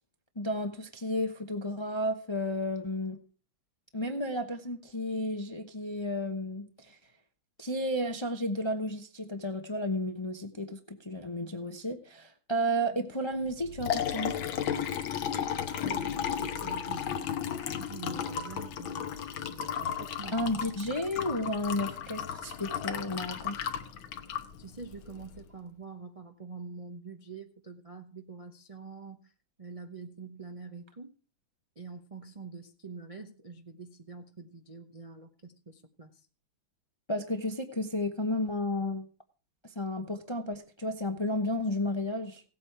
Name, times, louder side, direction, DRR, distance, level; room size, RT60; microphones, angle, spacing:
voice 1, 0.4-3.2 3.9-7.0 7.6-14.4 20.3-23.6 37.1-39.1 39.6-42.4, left 1 dB, 30° left, 6 dB, 0.4 m, -32 dB
Liquid, 13.5-25.4, left 8 dB, 80° left, 1.8 m, -34 dB
voice 2, 15.8-17.3 17.8-19.1 19.5-20.5 24.6-29.3 29.6-31.1 31.8-36.3, right 4 dB, 65° right, 4 dB, 0.3 m, -45 dB
17.0 x 8.5 x 4.7 m, 0.38 s
omnidirectional pair, 2.2 m